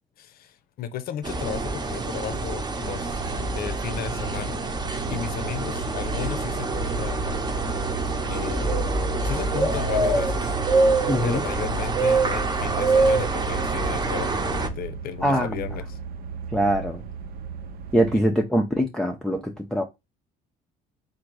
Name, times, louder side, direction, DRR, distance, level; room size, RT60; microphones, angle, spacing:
voice 1, 0.2-3.2 3.5-4.6 5.1-7.3 8.3-8.9 9.2-10.6 11.2-16.0, left 9 dB, 60° left, 0.6 m, -34 dB
sound 1, 1.2-14.7, right 3 dB, 25° right, 0.9 m, -25 dB
sound 2, 2.9-18.2, right 6 dB, 60° right, 0.6 m, -36 dB
voice 2, 11.1-11.4 15.2-15.6 16.5-17.0 17.9-19.8, equal, 5° left, 0.6 m, -23 dB
3.8 x 2.6 x 4.6 m
cardioid pair, 110°, 17 cm